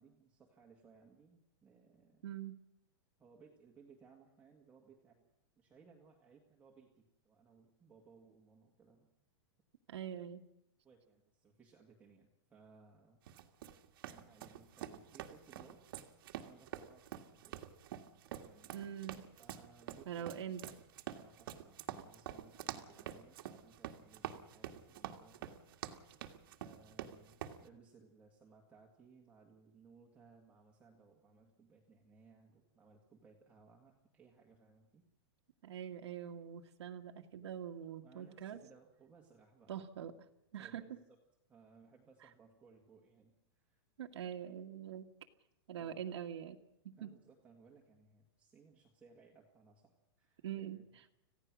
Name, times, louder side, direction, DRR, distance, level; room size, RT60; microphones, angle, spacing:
voice 1, 0.0-2.4 3.2-5.3 5.6-9.1 10.8-13.5 14.0-15.8 16.3-17.6 18.4-18.8 19.4-20.6 21.1-25.6 26.6-35.1 38.0-40.1 40.5-41.2 41.5-43.8 45.8-46.0 47.0-50.8, right 5 dB, 10° right, -2 dB, 1.9 m, -63 dB
voice 2, 2.2-2.6 9.9-10.4 18.7-19.2 20.1-20.7 35.6-38.6 39.7-40.1 40.5-41.0 42.2-42.3 44.0-45.1 45.7-46.6 46.8-47.1 50.4-50.8, right 9 dB, 75° right, 3 dB, 1.8 m, -44 dB
sound 1, 13.3-27.6, right 11 dB, 55° right, 1.8 m, -47 dB
26.5 x 16.0 x 6.2 m, 0.84 s
supercardioid pair, 165°, 14 cm